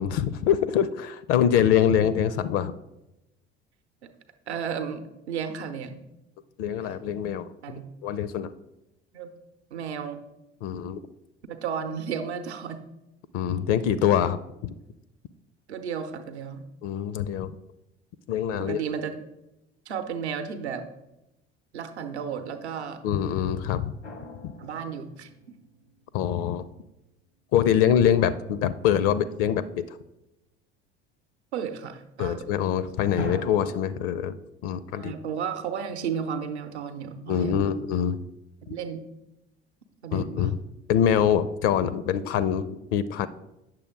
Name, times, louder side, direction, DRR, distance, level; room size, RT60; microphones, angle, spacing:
voice 1, 0.0-2.7 6.6-7.5 8.0-8.5 10.6-11.0 13.3-14.4 14.6-14.7 16.8-17.5 18.3-18.8 23.0-23.9 26.1-26.7 27.5-29.9 32.2-34.4 34.6-35.1 37.3-38.2 40.1-40.6 40.9-43.3, left 9 dB, 45° left, 16 dB, 0.5 m, -24 dB
voice 2, 4.5-6.0 6.8-7.0 7.6-7.9 9.1-9.3 9.7-10.2 11.5-12.8 15.7-16.7 18.5-19.1 19.9-20.9 21.7-23.0 24.6-25.3 31.5-32.5 35.0-37.7 38.7-39.0 40.0-40.6, right 7 dB, 70° right, 7 dB, 0.8 m, -33 dB
sound 1, 24.0-26.1 33.2-33.8, left 3 dB, 85° left, 1.1 m, -37 dB
9.0 x 6.8 x 3.6 m, 0.93 s
figure-of-eight pair, 65°, 34 cm